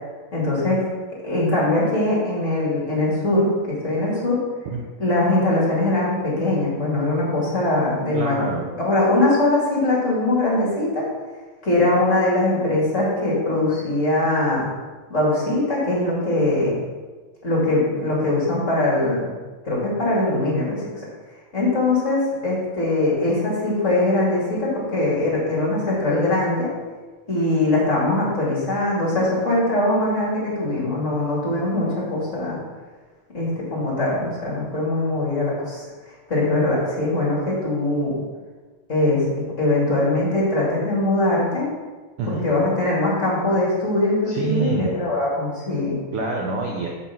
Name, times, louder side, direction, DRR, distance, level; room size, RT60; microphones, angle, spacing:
voice 1, 0.3-0.8 1.2-4.4 5.0-8.4 8.8-11.1 11.6-14.7 15.1-16.8 17.4-19.3 19.6-20.9 21.5-26.7 27.3-32.6 33.3-35.8 36.3-38.2 38.9-39.2 39.6-41.7 42.3-46.0, left 2 dB, 25° left, -6 dB, 2.5 m, -21 dB
voice 2, 8.1-8.7 42.2-42.6 44.3-45.0 46.1-46.9, right 4 dB, 65° right, -1 dB, 1.5 m, -26 dB
7.1 x 5.9 x 6.0 m, 1.3 s
omnidirectional pair, 3.3 m